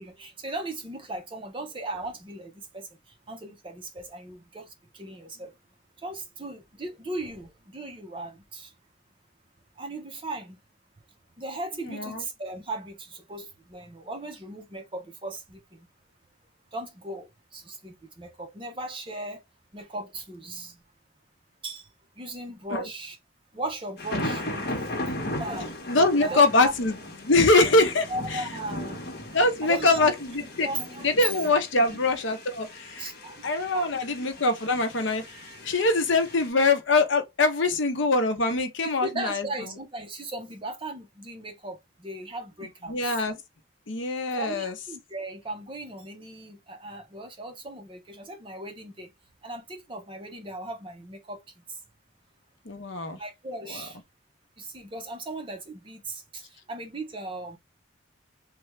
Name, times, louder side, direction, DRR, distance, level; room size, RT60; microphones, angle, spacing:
voice 1, 0.0-2.9 3.3-5.5 6.0-8.7 9.8-10.6 11.4-15.9 16.7-19.4 19.7-20.8 21.6-21.9 22.2-23.2 23.5-24.9 25.4-25.8 26.2-26.7 28.1-29.0 29.6-30.1 30.6-32.0 33.0-33.4 33.7-34.3 39.0-43.2 44.4-49.1 49.4-51.4 53.2-54.0 54.6-57.6, right 2 dB, 25° right, 0.6 m, -37 dB
voice 2, 11.8-12.2 22.7-22.9 25.3-25.4 25.9-28.4 29.3-30.7 31.0-33.1 33.4-39.5 42.9-43.4 43.9-44.8 52.7-53.2 53.7-53.9, left 2 dB, 70° left, 0.7 m, -23 dB
sound 1, 24.0-36.5, left 1 dB, 50° left, 1.0 m, -37 dB
3.2 x 2.3 x 3.0 m
head